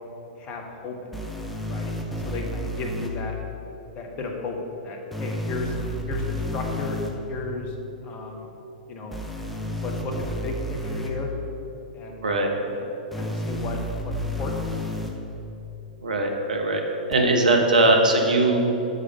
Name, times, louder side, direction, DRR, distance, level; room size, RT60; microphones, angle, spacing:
voice 1, 0.4-1.0 1.7-3.4 3.9-4.6 4.8-7.0 7.3-7.7 8.0-8.5 8.9-9.2 9.5-10.1 10.4-11.3 11.9-12.8 13.1-13.8 14.0-14.5, left 3 dB, 30° left, 1 dB, 1.0 m, -34 dB
sound 1, 1.1-3.1 5.1-7.1 9.1-11.1 13.1-15.1 17.1-17.2, equal, ahead, 0.7 m, -31 dB
voice 2, 16.0-16.8 17.1-18.6, right 2 dB, 70° right, 2 dB, 0.9 m, -20 dB
6.6 x 4.9 x 5.2 m, 3.0 s
figure-of-eight pair, 100°, 4 cm